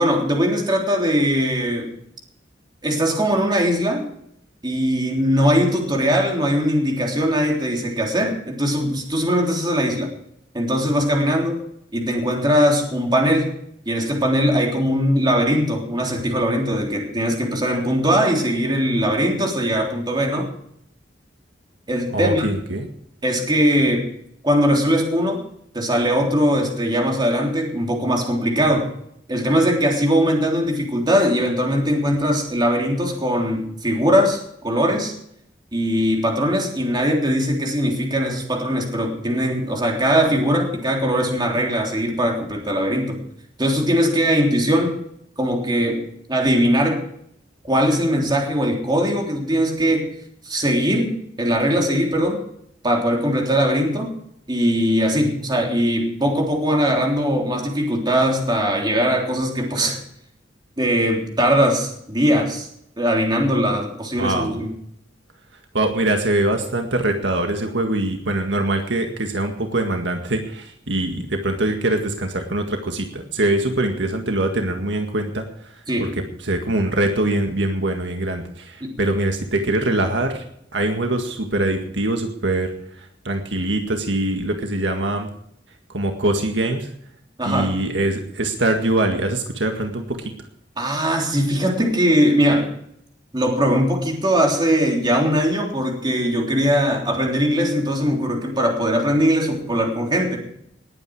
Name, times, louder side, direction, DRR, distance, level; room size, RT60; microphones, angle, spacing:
voice 1, 0.0-1.9 2.8-4.1 4.6-10.1 10.5-11.6 11.9-13.5 13.9-20.5 21.9-22.5 23.2-24.1 24.4-25.4 25.7-28.9 29.3-35.1 35.7-43.2 43.6-45.0 45.4-47.0 47.7-50.1 50.5-52.4 52.8-54.1 54.5-60.0 60.8-62.7 63.0-64.7 75.9-76.1 78.8-78.9 87.4-87.7 90.8-92.7 93.3-100.4, equal, 25° right, 1 dB, 3.5 m, -20 dB
voice 2, 22.1-22.9 64.2-64.5 65.7-75.7 76.0-76.1 76.4-80.4 80.7-85.3 85.9-86.9 87.4-90.3, right 1 dB, 75° right, 4 dB, 1.8 m, -23 dB
19.5 x 9.1 x 4.9 m, 0.71 s
head